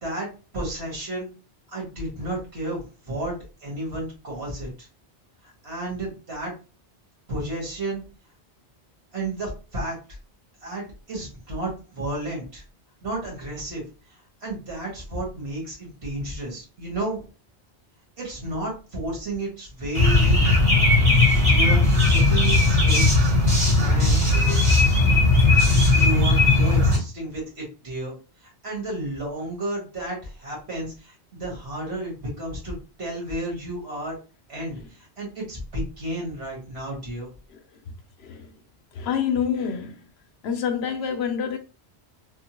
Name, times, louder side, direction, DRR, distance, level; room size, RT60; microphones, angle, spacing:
voice 1, 0.0-1.3 1.7-4.9 5.4-6.5 7.3-8.0 9.1-10.0 10.6-12.6 13.0-13.8 14.4-17.3 18.2-20.5 21.5-23.1 23.7-24.3 25.9-34.2 34.5-37.3, right 1 dB, 70° right, 1.8 m, -32 dB
sound 1, 20.0-27.0, left 2 dB, 30° right, 1.1 m, -17 dB
voice 2, 38.9-40.0 40.4-41.6, left 7 dB, 70° left, 0.8 m, -27 dB
3.5 x 2.2 x 2.9 m
omnidirectional pair, 1.1 m